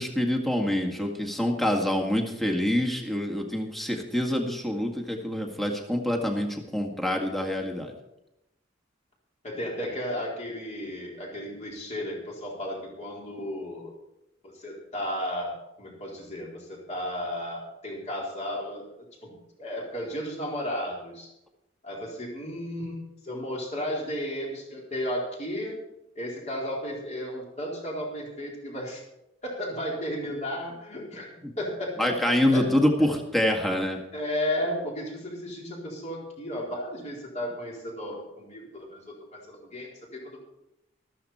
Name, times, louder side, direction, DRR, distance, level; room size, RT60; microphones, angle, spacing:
voice 1, 0.0-7.9 32.0-34.0, left 1 dB, ahead, 0 dB, 1.9 m, -26 dB
voice 2, 9.4-13.9 14.5-18.8 19.2-19.3 19.6-21.3 21.8-25.8 26.1-29.0 29.4-31.3 31.6-33.1 34.1-40.4, equal, 35° left, -3 dB, 4.3 m, -34 dB
14.0 x 13.5 x 4.3 m, 0.87 s
head